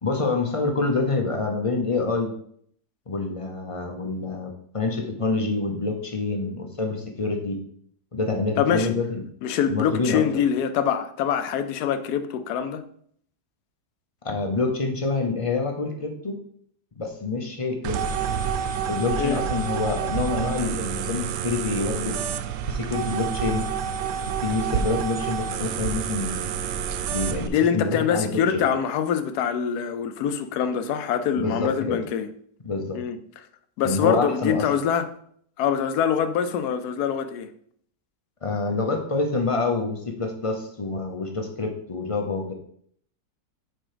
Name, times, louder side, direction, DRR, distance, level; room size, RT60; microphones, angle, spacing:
voice 1, 0.0-2.3 3.1-7.6 8.1-9.2 9.7-10.2 14.2-16.4 17.0-18.0 18.9-22.2 22.7-23.6 24.4-26.5 27.1-28.7 31.4-32.0 32.6-33.0 33.8-34.7 38.4-42.5, left 3 dB, 40° left, 0.5 m, -27 dB
voice 2, 8.6-8.9 9.4-12.8 19.2-19.4 27.4-32.3 32.9-33.2 33.8-35.1 35.6-37.5, left 8 dB, 75° left, 1.1 m, -24 dB
sound 1, 17.8-27.5, right 7 dB, 85° right, 1.2 m, -28 dB
6.1 x 4.4 x 5.0 m
omnidirectional pair, 1.8 m